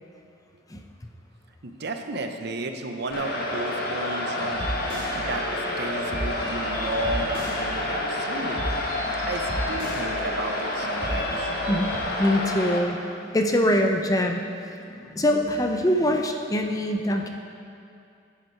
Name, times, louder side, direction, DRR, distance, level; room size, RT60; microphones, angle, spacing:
voice 1, 1.6-4.6 5.1-8.6 9.2-11.5, right 2 dB, 55° right, 5 dB, 0.8 m, -33 dB
sound 1, 3.1-12.8, left 1 dB, 50° left, 1.4 m, -29 dB
sound 2, 4.5-12.0, equal, 25° right, 2.7 m, -34 dB
voice 2, 12.2-14.5 14.8-17.3, equal, 15° left, 3 dB, 0.6 m, -24 dB
15.5 x 8.1 x 4.6 m, 2.5 s
head